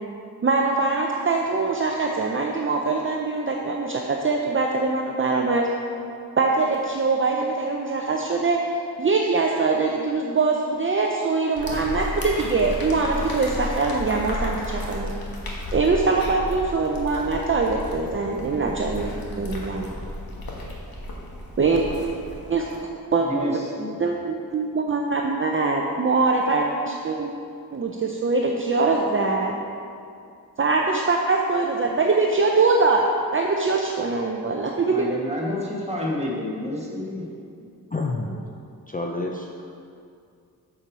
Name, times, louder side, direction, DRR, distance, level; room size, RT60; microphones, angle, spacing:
voice 1, 0.4-5.7 6.4-8.7 9.0-15.1 15.7-19.9 21.6-21.8 22.5-22.7 23.1-23.3 24.0-27.3 27.7-29.5 30.6-33.1 33.3-35.1, right 3 dB, 35° right, 0 dB, 0.5 m, -23 dB
sound 1, 11.6-22.8, left 1 dB, 75° left, 1.3 m, -33 dB
voice 2, 23.2-24.0 34.9-37.3, left 1 dB, 15° right, -4 dB, 1.6 m, -29 dB
voice 3, 37.6-38.4 38.9-39.7, left 2 dB, 25° left, 1 dB, 0.5 m, -30 dB
7.0 x 6.9 x 4.8 m, 2.4 s
wide cardioid pair, 110°, 36 cm